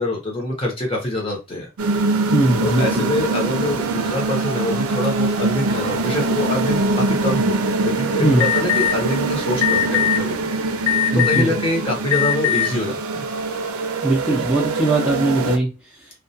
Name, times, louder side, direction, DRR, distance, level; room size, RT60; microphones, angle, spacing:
voice 1, 0.0-1.7 2.6-7.6 7.8-10.4 11.1-13.3, left 1 dB, 25° left, 0 dB, 0.8 m, -25 dB
sound 1, 1.8-15.6, right 3 dB, 85° right, 0.5 m, -23 dB
voice 2, 2.3-3.1 8.2-8.5 11.1-11.5 14.0-16.2, right 2 dB, 5° right, -5 dB, 0.5 m, -20 dB
Alarm, 8.4-8.9 9.6-10.2 10.9-11.5 12.1-12.7, left 11 dB, 85° left, 0.5 m, -19 dB
2.3 x 2.2 x 2.7 m, 0.26 s
head